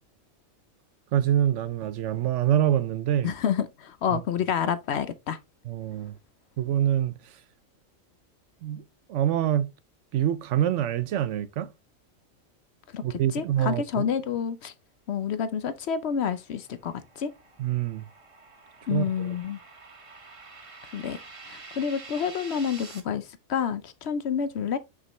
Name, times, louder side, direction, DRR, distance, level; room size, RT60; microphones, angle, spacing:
voice 1, 1.1-3.3 4.1-4.2 5.7-6.1 6.6-7.2 8.6-8.8 9.1-9.7 10.1-11.7 13.0-14.1 17.6-18.1 18.9-19.4, right 11 dB, 70° right, 0.8 m, -25 dB
voice 2, 3.2-5.4 12.9-14.7 15.1-17.3 18.9-19.6 20.9-21.2 21.5-24.8, left 7 dB, 60° left, 0.8 m, -29 dB
sound 1, 16.2-23.0, right 3 dB, 25° right, 1.0 m, -47 dB
6.0 x 5.3 x 3.0 m
omnidirectional pair, 1.4 m